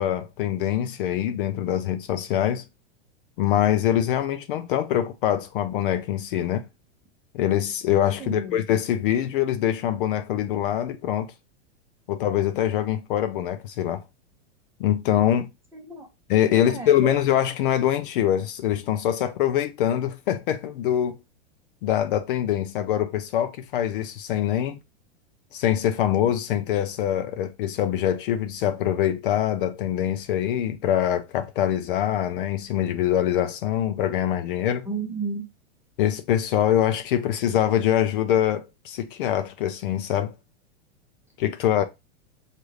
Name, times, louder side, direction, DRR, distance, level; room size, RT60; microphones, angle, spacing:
voice 1, 0.0-2.6 3.4-6.7 7.3-11.3 12.1-14.0 14.8-15.5 16.3-21.2 21.8-24.8 25.5-34.9 36.0-40.3 41.4-41.8, left 11 dB, 50° left, 0.4 m, -24 dB
voice 2, 8.2-8.6 15.7-16.1 16.5-17.2 34.8-35.4, right 4 dB, 5° right, 0.7 m, -33 dB
6.4 x 2.5 x 3.1 m
supercardioid pair, 155°, 35 cm